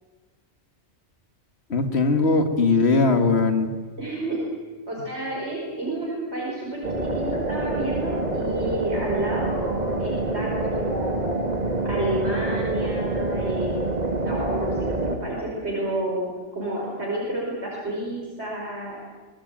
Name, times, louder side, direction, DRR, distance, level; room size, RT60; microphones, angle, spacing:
voice 1, 1.7-3.7, left 3 dB, 65° left, 7 dB, 2.2 m, -20 dB
voice 2, 4.0-4.4 4.9-11.4 11.8-19.0, right 1 dB, 70° right, -4 dB, 5.6 m, -30 dB
sound 1, 6.8-15.2, right 2 dB, 35° right, 2.3 m, -26 dB
23.5 x 20.5 x 9.0 m, 1.4 s
omnidirectional pair, 1.2 m